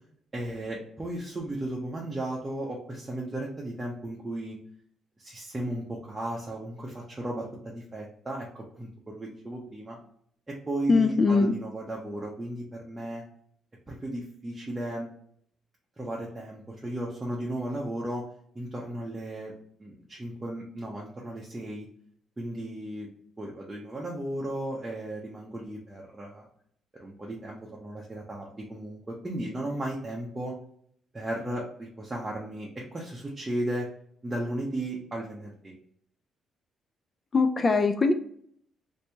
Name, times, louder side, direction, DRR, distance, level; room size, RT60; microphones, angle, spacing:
voice 1, 0.3-4.6 5.2-10.0 10.5-13.2 13.9-15.1 16.0-18.2 18.5-19.5 19.8-21.9 22.4-23.1 23.4-26.5 27.0-30.5 31.1-33.9 34.2-35.7, right 1 dB, 15° right, -3 dB, 0.7 m, -35 dB
voice 2, 10.9-11.5 37.3-38.1, left 4 dB, 30° left, 6 dB, 0.3 m, -21 dB
2.9 x 2.6 x 3.3 m, 0.65 s
cardioid pair, 105°, 0 cm